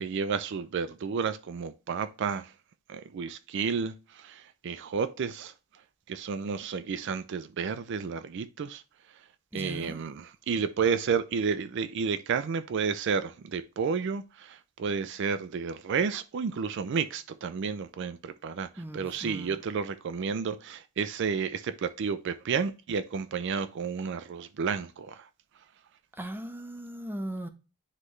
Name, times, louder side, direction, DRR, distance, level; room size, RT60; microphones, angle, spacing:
voice 1, 0.0-2.5 2.9-5.5 6.1-8.8 9.5-25.2, right 6 dB, 60° right, 0.4 m, -31 dB
voice 2, 9.5-10.0 18.8-19.6 26.2-27.5, right 1 dB, 10° right, 0.6 m, -38 dB
9.7 x 3.2 x 3.1 m
head